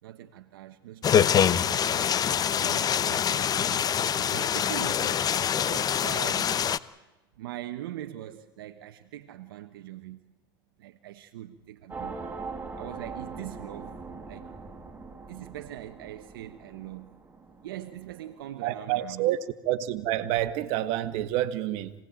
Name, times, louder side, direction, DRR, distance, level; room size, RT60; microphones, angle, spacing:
voice 1, 0.0-3.7 4.1-5.2 5.6-6.5 7.4-10.3 10.8-12.3 12.8-14.0 14.3-14.6 15.3-17.1 17.6-19.3, right 13 dB, 80° right, 1.2 m, -42 dB
sound 1, 1.0-6.8, left 8 dB, 35° left, 0.9 m, -25 dB
sound 2, 11.9-18.7, right 4 dB, 15° right, 4.6 m, -42 dB
voice 2, 18.6-19.4 19.6-21.9, right 13 dB, 60° right, 1.7 m, -28 dB
26.5 x 18.5 x 9.1 m
hypercardioid pair, 90°, 12 cm